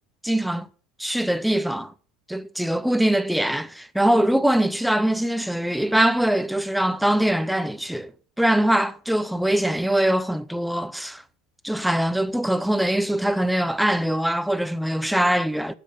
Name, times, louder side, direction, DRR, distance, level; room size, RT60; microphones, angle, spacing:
voice 1, 0.2-0.7 1.0-1.9 2.3-8.1 8.4-11.2 11.6-15.7, right 1 dB, ahead, 0.6 m, -22 dB
10.0 x 7.6 x 5.4 m
supercardioid pair, 135°, 0 cm